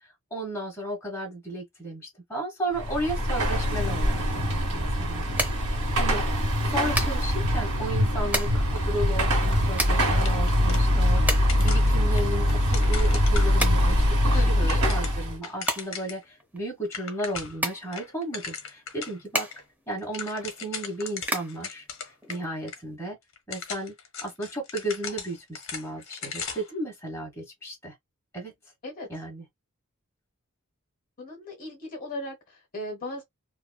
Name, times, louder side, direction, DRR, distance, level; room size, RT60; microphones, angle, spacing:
voice 1, 0.3-6.2 6.7-19.5 19.9-21.8 22.3-23.2 23.5-23.9 24.2-27.9 28.3-28.5 29.1-29.5, right 1 dB, 10° left, 1.3 m, -34 dB
Car passing by / Traffic noise roadway noise / Engine, 2.7-15.4, equal, 85° right, 1.4 m, -23 dB
sound 1, 5.4-22.9, right 1 dB, 10° right, 0.6 m, -35 dB
sound 2, 10.2-11.2 11.5-14.0 14.4-16.2 16.6-16.7 16.8-17.6 17.9-19.2 19.5-19.6 19.9-22.4 22.7-22.8 23.3-26.8, left 6 dB, 60° left, 0.8 m, -38 dB
voice 2, 14.3-14.8 28.8-29.1 31.2-33.2, left 1 dB, 40° left, 1.1 m, -36 dB
3.0 x 2.5 x 2.3 m
head